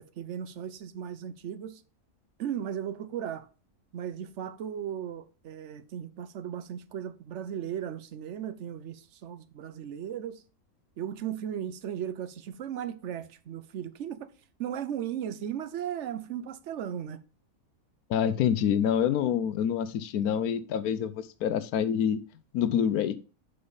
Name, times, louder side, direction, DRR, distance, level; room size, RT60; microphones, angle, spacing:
voice 1, 0.0-1.8 2.4-3.5 3.9-10.4 11.0-14.3 14.6-17.2, right 9 dB, 60° right, 0.9 m, -36 dB
voice 2, 18.1-22.2 22.5-23.1, left 8 dB, 85° left, 1.1 m, -26 dB
6.8 x 5.5 x 3.9 m
omnidirectional pair, 1.5 m